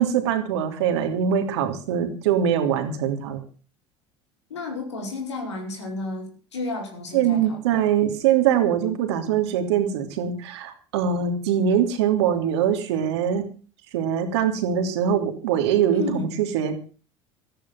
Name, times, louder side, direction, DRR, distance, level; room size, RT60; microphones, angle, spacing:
voice 1, 0.0-3.4 7.1-13.4 13.9-16.7, right 9 dB, 75° right, 6 dB, 3.1 m, -23 dB
voice 2, 4.5-7.9 15.9-16.3, left 2 dB, 85° left, 3 dB, 5.0 m, -32 dB
14.0 x 14.0 x 5.9 m, 0.38 s
hypercardioid pair, 70°, 14 cm